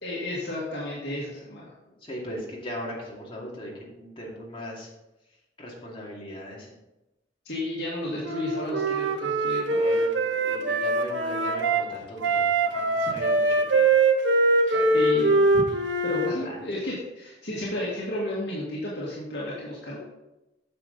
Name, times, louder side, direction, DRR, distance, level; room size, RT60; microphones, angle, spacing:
voice 1, 0.0-1.7 7.5-10.0 14.6-15.6 16.0-20.0, left 1 dB, 60° left, -6 dB, 1.9 m, -32 dB
voice 2, 1.9-4.9 5.6-6.8 9.7-12.5 12.7-13.9 14.7-15.3 16.2-16.6, equal, 30° left, -4 dB, 2.3 m, -39 dB
Wind instrument woodwind instrument, 8.2-11.8 12.2-16.3, right 2 dB, 70° right, 1.0 m, -23 dB
9.2 x 6.7 x 4.0 m, 0.96 s
head